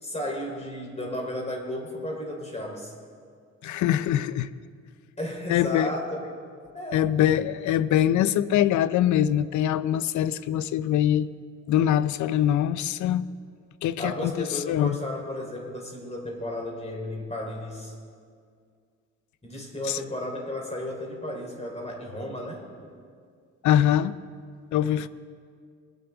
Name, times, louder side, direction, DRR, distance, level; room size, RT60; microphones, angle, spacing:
voice 1, 0.0-2.9 5.2-6.2 6.7-7.0 14.0-17.9 19.4-22.6, left 1 dB, 20° left, 0 dB, 3.3 m, -33 dB
voice 2, 3.6-4.5 5.5-5.9 6.9-11.3 11.7-13.2 13.8-15.0 19.9-20.0 23.6-24.1 24.7-25.1, left 11 dB, 75° left, 16 dB, 0.5 m, -23 dB
20.5 x 10.5 x 3.5 m, 2.1 s
cardioid pair, 90°, 30 cm